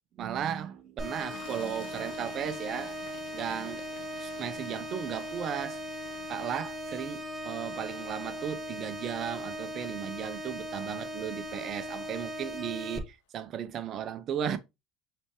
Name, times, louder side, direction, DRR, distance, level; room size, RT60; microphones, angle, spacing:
voice 1, 0.2-2.9 3.3-3.8 4.2-5.8 6.3-14.6, right 9 dB, 50° right, 0.7 m, -35 dB
sound 1, 1.0-13.0, equal, 10° right, 1.8 m, -39 dB
Toilet flush, 1.1-11.4 12.3-12.5 12.8-13.0, left 8 dB, 80° left, 0.8 m, -54 dB
5.1 x 3.4 x 3.1 m
hypercardioid pair, 80°, 0 cm